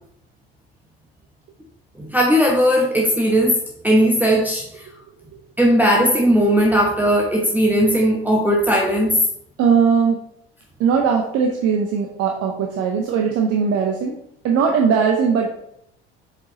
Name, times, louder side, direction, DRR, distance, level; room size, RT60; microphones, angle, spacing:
voice 1, 2.0-3.6 3.8-4.6 5.6-9.2, equal, 5° right, -2 dB, 1.0 m, -17 dB
voice 2, 9.6-10.2 10.8-14.2 14.4-15.5, right 6 dB, 50° right, 2 dB, 0.8 m, -19 dB
7.1 x 5.0 x 2.8 m, 0.75 s
figure-of-eight pair, 60°, 31 cm